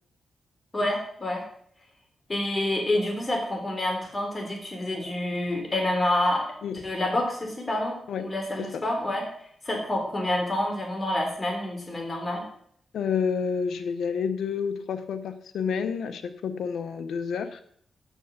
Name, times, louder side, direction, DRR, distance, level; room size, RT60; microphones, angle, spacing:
voice 1, 0.7-1.4 2.3-6.5 6.7-9.3 9.6-12.4, left 1 dB, 30° left, 2 dB, 3.7 m, -28 dB
voice 2, 12.9-17.6, left 6 dB, 85° left, 10 dB, 0.8 m, -29 dB
9.1 x 6.8 x 8.0 m, 0.65 s
cardioid pair, 65°, 0 cm